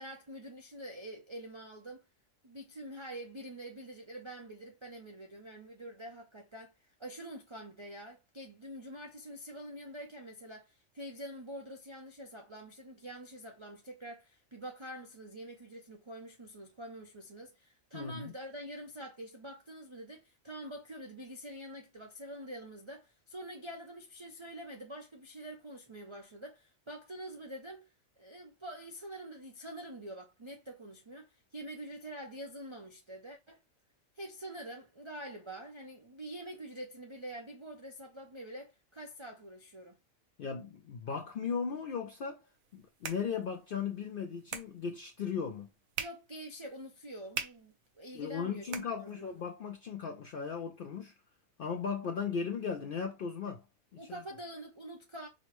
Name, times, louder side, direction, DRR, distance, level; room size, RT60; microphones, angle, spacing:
voice 1, 0.0-2.0 2.4-6.7 7.0-27.9 28.2-33.6 34.2-40.0 46.0-48.7 49.0-49.3 54.0-55.3, right 1 dB, 50° right, 0.3 m, -46 dB
voice 2, 17.9-18.3 40.4-42.4 42.7-45.7 48.1-51.1 51.6-53.6 53.9-54.2, left 6 dB, 65° left, 0.5 m, -37 dB
sound 1, 42.5-49.5, right 8 dB, 80° right, 1.1 m, -46 dB
5.2 x 2.0 x 3.0 m
omnidirectional pair, 1.4 m